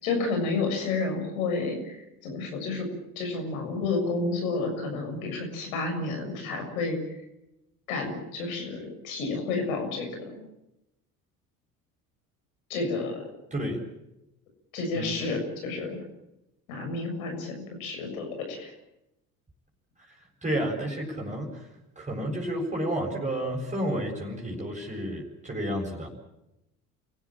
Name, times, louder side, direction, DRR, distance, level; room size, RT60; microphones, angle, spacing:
voice 1, 0.0-2.9 3.2-7.0 7.9-10.4 12.7-13.2 14.7-16.0 16.7-18.7, left 3 dB, 75° left, 4 dB, 6.8 m, -30 dB
voice 2, 20.4-21.7 22.0-26.1, right 1 dB, 15° right, 0 dB, 7.6 m, -31 dB
29.5 x 16.5 x 9.0 m, 0.90 s
figure-of-eight pair, 60°, 43 cm